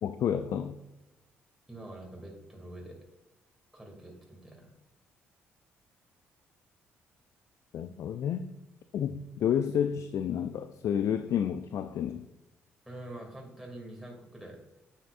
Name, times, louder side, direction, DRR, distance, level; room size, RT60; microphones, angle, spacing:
voice 1, 0.0-0.8 7.7-8.5 8.9-12.3, left 9 dB, 55° left, 11 dB, 0.4 m, -30 dB
voice 2, 1.7-3.0 3.7-4.7 12.8-14.8, right 1 dB, 5° right, -1 dB, 2.7 m, -46 dB
9.1 x 6.6 x 2.5 m, 1.0 s
hypercardioid pair, 45°, 6 cm